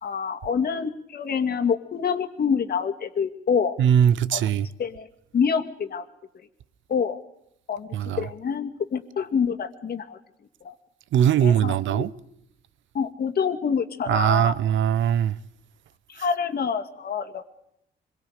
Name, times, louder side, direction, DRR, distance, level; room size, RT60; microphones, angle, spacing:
voice 1, 0.0-3.8 4.3-4.4 4.8-5.1 5.3-6.0 6.9-7.2 7.7-7.9 8.2-10.2 10.6-10.7 11.4-12.0 12.9-14.6 16.1-17.5, left 6 dB, 50° left, 2.2 m, -26 dB
voice 2, 3.8-4.7 7.9-8.2 11.1-12.1 14.1-15.3, right 9 dB, 75° right, 0.8 m, -21 dB
25.5 x 22.0 x 5.1 m
cardioid pair, 90°, 20 cm